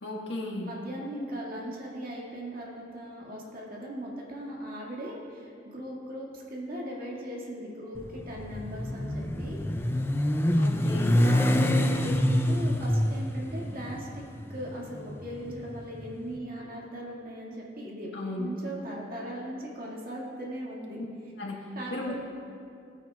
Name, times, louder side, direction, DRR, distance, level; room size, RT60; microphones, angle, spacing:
voice 1, 0.0-0.7 10.6-11.2 18.1-18.5 21.4-21.6 21.9-22.3, left 2 dB, 90° left, -2 dB, 1.6 m, -35 dB
voice 2, 0.6-9.6 11.1-14.2 14.5-18.1 18.4-21.0 21.8-22.3, right 1 dB, 55° right, -4 dB, 2.0 m, -38 dB
Motorcycle, 8.0-16.2, left 1 dB, 15° left, 0.5 m, -26 dB
16.5 x 9.4 x 2.4 m, 2.5 s
head